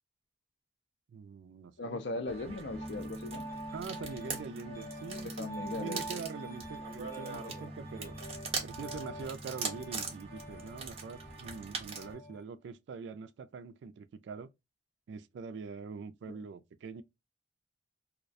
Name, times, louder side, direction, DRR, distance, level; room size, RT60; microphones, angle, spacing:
voice 1, 1.1-2.3 3.7-8.2 8.6-14.5 15.1-17.0, right 5 dB, 70° right, 0.3 m, -44 dB
voice 2, 1.8-3.5 5.2-6.2 16.3-16.4, left 2 dB, 65° left, 0.5 m, -39 dB
sound 1, 2.3-12.1, right 5 dB, 30° right, 0.7 m, -42 dB
Piano, 2.7-12.4, equal, 15° left, 1.0 m, -44 dB
2.3 x 2.1 x 2.5 m
head